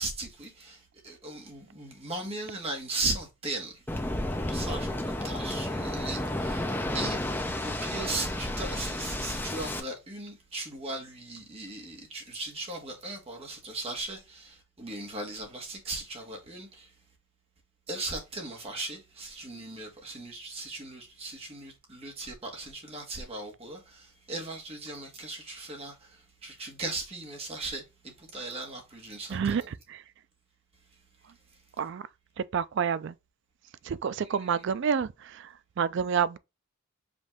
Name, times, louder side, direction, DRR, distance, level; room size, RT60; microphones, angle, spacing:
voice 1, 0.0-3.8 4.5-4.9 5.2-7.2 7.6-16.9 17.9-29.7 34.2-34.6, right 2 dB, 30° right, 1.4 m, -38 dB
Waves surf, 3.9-9.8, left 1 dB, 10° left, 0.5 m, -32 dB
voice 2, 29.3-29.6 29.9-30.0 31.8-32.0 32.4-33.1 33.8-36.4, right 7 dB, 60° right, 0.3 m, -29 dB
5.2 x 2.7 x 3.5 m
head